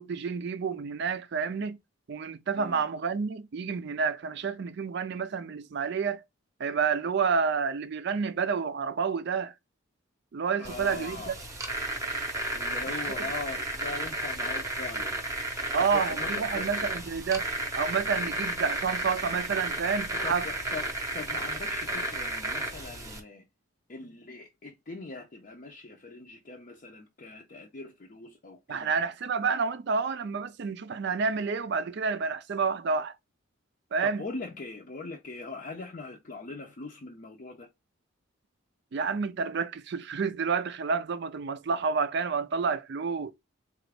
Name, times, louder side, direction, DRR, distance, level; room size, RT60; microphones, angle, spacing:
voice 1, 0.0-1.8 2.1-6.2 6.6-9.5 10.3-11.4 15.7-17.5 17.7-20.5 28.7-33.1 33.9-34.2 38.9-43.3, right 5 dB, 55° right, 0.4 m, -29 dB
voice 2, 10.6-11.4 12.5-15.2 15.8-16.7 20.2-23.4 23.9-28.9 34.0-37.7, left 3 dB, 40° left, 0.5 m, -41 dB
sound 1, 10.6-23.2, right 1 dB, 15° right, 0.7 m, -33 dB
3.9 x 2.4 x 3.3 m
head